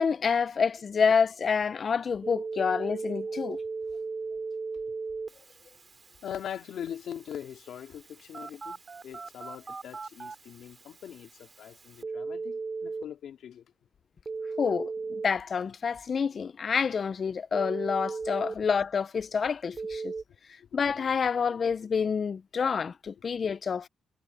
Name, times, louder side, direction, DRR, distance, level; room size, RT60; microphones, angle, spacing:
voice 1, 0.0-3.6 14.6-20.1 20.7-23.9, left 6 dB, 40° left, 0.5 m, -28 dB
Telephone, 2.2-13.0 14.3-15.3 17.5-18.5 19.8-20.2, right 4 dB, 30° right, 2.3 m, -37 dB
voice 2, 6.2-13.7, left 9 dB, 75° left, 2.3 m, -41 dB
cardioid pair, 120°, 0 cm